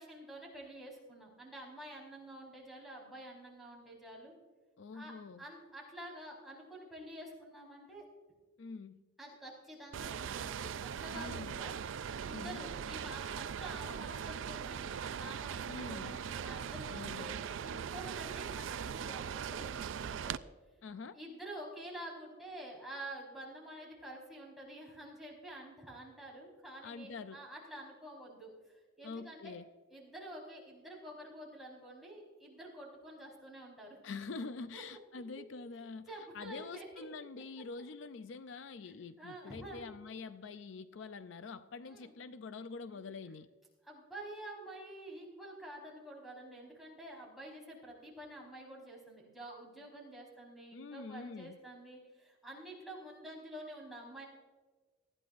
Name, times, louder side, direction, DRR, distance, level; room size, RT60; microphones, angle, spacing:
voice 1, 0.0-4.3 4.9-8.1 9.2-11.7 12.2-17.3 17.6-20.4 21.1-29.5 29.9-34.0 34.7-34.8 36.1-37.2 38.8-39.8 41.8-42.1 43.8-54.2, right 1 dB, ahead, -4 dB, 4.6 m, -49 dB
voice 2, 4.8-5.4 8.6-9.0 11.1-11.6 12.3-12.7 15.7-16.2 16.9-17.4 20.8-21.2 26.8-27.4 29.0-29.7 34.0-43.5 50.7-51.6, left 4 dB, 65° left, 11 dB, 0.5 m, -46 dB
sound 1, 9.9-20.4, right 7 dB, 70° right, 0.4 m, -40 dB
19.5 x 14.0 x 2.6 m, 1.3 s
head